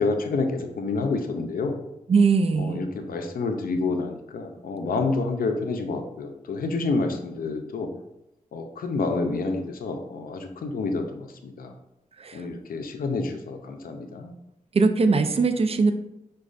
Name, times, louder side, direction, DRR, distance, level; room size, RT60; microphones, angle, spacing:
voice 1, 0.0-1.7 2.6-7.9 8.5-11.7 12.3-14.3, left 3 dB, 85° left, 5 dB, 0.5 m, -28 dB
voice 2, 2.1-2.8 12.2-12.4 14.7-15.9, right 4 dB, 45° right, 8 dB, 0.4 m, -21 dB
6.1 x 2.3 x 2.4 m, 0.87 s
cardioid pair, 50°, 15 cm